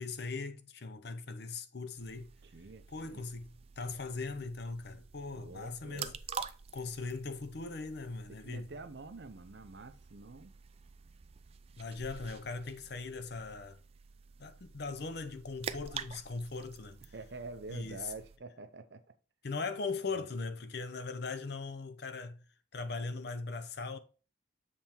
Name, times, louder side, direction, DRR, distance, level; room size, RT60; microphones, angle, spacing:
voice 1, 0.0-2.3 2.9-6.1 6.7-8.7 11.8-13.8 14.4-17.1 17.7-18.1 19.4-22.4 22.7-24.0, left 4 dB, 55° left, 0.6 m, -40 dB
sound 1, 2.0-18.4, right 6 dB, 30° right, 0.3 m, -48 dB
voice 2, 2.4-3.3 5.3-6.2 8.3-10.5 17.1-19.0 20.0-20.2, right 3 dB, 60° right, 0.6 m, -47 dB
7.4 x 3.5 x 4.3 m
head